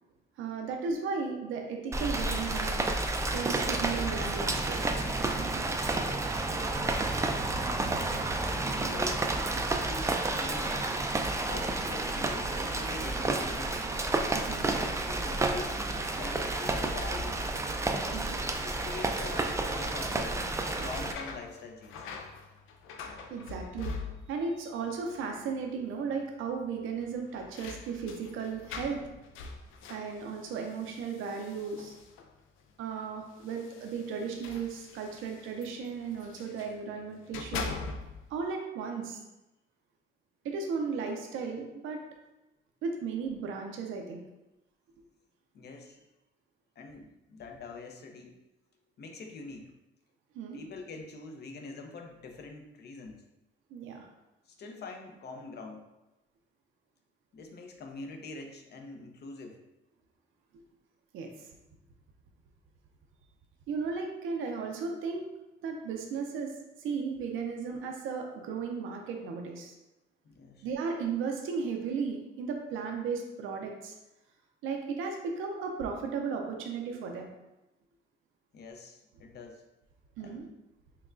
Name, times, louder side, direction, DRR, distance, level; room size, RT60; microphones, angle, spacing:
voice 1, 0.4-2.8 3.3-4.9 14.3-14.7 18.1-18.4 23.3-23.9 24.3-29.0 29.9-31.9 32.8-37.7 38.3-39.2 40.4-42.0 42.8-44.2 50.3-50.6 53.7-54.1 61.1-61.5 63.7-65.2 65.6-66.5 66.8-69.7 70.6-73.9 74.6-77.3 80.2-80.4, right 5 dB, 85° right, 2 dB, 0.6 m, -35 dB
Rain, 1.9-21.1, right 2 dB, 15° right, 0.3 m, -31 dB
voice 2, 6.3-7.1 7.9-8.4 8.7-9.3 9.7-10.9 11.5-13.9 15.1-17.4 18.5-22.1 45.5-46.1 46.8-48.4 49.0-49.7 50.5-53.2 54.5-55.9 57.3-59.6 70.2-70.7 78.5-79.7 80.2-80.4, left 3 dB, 55° left, 3 dB, 0.7 m, -44 dB
sound 1, 20.6-24.6 24.8-25.5 25.8-25.9 27.0-32.4 33.3-36.8 37.2-38.4, left 4 dB, 90° left, 0.4 m, -43 dB
5.6 x 2.3 x 2.5 m, 0.97 s
cardioid pair, 90°, 20 cm